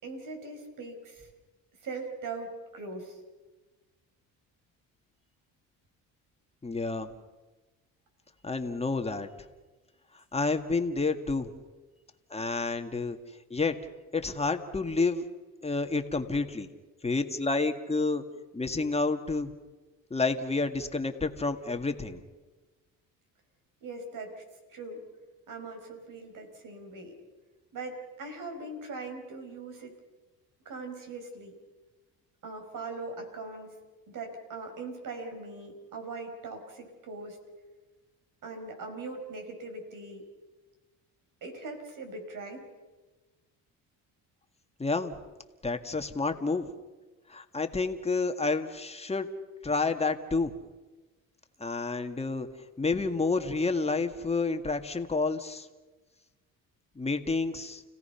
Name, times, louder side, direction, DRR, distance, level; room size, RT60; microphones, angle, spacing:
voice 1, 0.0-1.3 1.8-3.2 23.8-24.4 24.7-25.0 25.5-27.2 27.7-29.9 30.7-31.5 32.4-33.8 34.1-37.4 38.4-40.2 41.4-42.6, right 3 dB, 60° right, 5 dB, 5.3 m, -40 dB
voice 2, 6.6-7.1 8.4-9.3 10.1-11.5 12.3-13.2 13.5-13.8 14.1-15.3 15.6-16.7 17.0-18.2 18.5-19.5 20.1-22.2 44.8-45.2 45.6-46.7 47.3-49.3 49.6-50.5 51.6-52.5 52.8-55.7 57.0-57.8, left 3 dB, 15° left, 6 dB, 1.9 m, -29 dB
30.0 x 17.0 x 5.8 m, 1.2 s
supercardioid pair, 85°, 35 cm